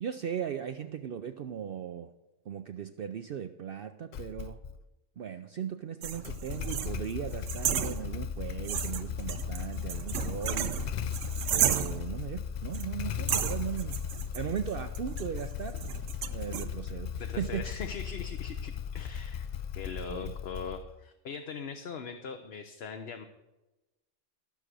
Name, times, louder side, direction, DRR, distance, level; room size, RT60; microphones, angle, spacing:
voice 1, 0.0-2.1 2.5-4.6 5.2-10.8 11.5-14.0 14.3-15.8 16.2-17.6 20.1-20.3, right 8 dB, 60° right, 8 dB, 0.6 m, -37 dB
Motorcycle / Engine starting, 4.1-4.8 6.1-21.0, left 8 dB, 80° left, 0.4 m, -37 dB
sound 1, 6.0-8.4 8.6-12.2 12.7-12.9 13.3-16.6, right 9 dB, 80° right, 1.1 m, -33 dB
voice 2, 17.2-19.5 19.7-23.2, left 6 dB, 60° left, 6 dB, 1.0 m, -41 dB
14.0 x 6.4 x 6.2 m, 1.0 s
omnidirectional pair, 1.3 m